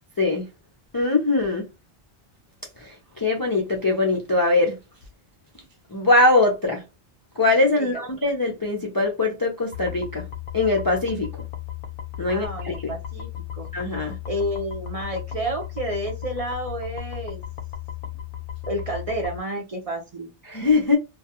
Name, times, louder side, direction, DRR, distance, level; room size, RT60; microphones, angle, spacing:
voice 1, 0.2-0.5 0.9-1.6 2.8-4.8 5.9-6.8 7.4-10.3 10.5-11.3 12.2-12.9 13.7-14.2 20.5-21.0, left 2 dB, 35° left, 0.3 m, -22 dB
voice 2, 7.8-8.1 12.3-13.7 14.3-17.4 18.6-20.3, right 1 dB, 40° right, 0.6 m, -30 dB
sound 1, 9.7-19.4, left 12 dB, 65° left, 0.7 m, -35 dB
2.3 x 2.2 x 2.8 m
omnidirectional pair, 1.0 m